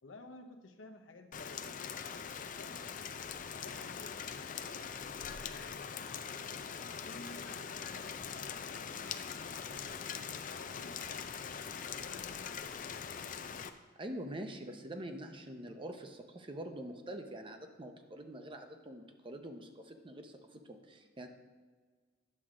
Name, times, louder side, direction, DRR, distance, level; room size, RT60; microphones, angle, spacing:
voice 1, 0.0-2.9 3.5-6.3 6.9-11.4 11.8-12.8, left 2 dB, 90° left, 4 dB, 0.9 m, -55 dB
Rain, 1.3-13.7, left 7 dB, 45° left, 0.4 m, -42 dB
voice 2, 14.0-21.3, right 1 dB, 25° right, 5 dB, 0.7 m, -45 dB
9.9 x 7.4 x 3.7 m, 1.5 s
head